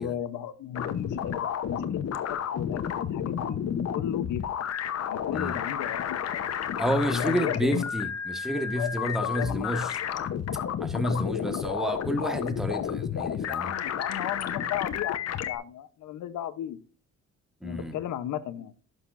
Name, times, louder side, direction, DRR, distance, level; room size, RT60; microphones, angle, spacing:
voice 1, 0.0-2.0 2.3-4.4 5.0-6.5 7.1-7.9 8.8-8.9 9.2-9.6 13.5-16.8 17.6-18.7, left 11 dB, 80° left, 0.9 m, -35 dB
sound 1, 0.7-15.6, left 8 dB, 55° left, 1.0 m, -31 dB
voice 2, 6.8-9.9 10.8-13.7 17.6-18.0, equal, ahead, 1.5 m, -30 dB
11.5 x 6.7 x 2.6 m
cardioid pair, 90°, 30 cm